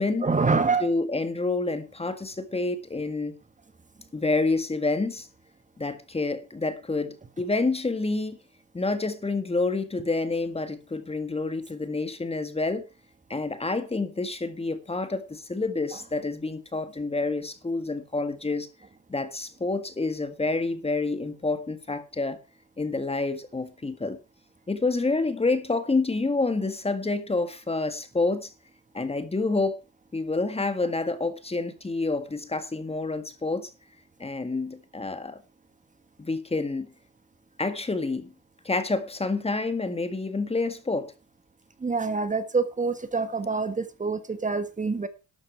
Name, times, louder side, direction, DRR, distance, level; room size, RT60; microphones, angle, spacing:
voice 1, 0.2-0.9 41.8-45.1, right 4 dB, 25° right, 1.6 m, -26 dB
voice 2, 0.8-3.4 4.1-5.3 5.8-8.4 8.7-12.9 13.3-18.7 19.1-22.4 22.8-24.2 24.7-28.5 28.9-29.8 30.1-33.7 34.2-35.4 36.2-36.9 37.6-38.3 38.7-41.1, left 3 dB, 20° left, 1.7 m, -28 dB
12.5 x 8.8 x 4.6 m
cardioid pair, 90°, 30 cm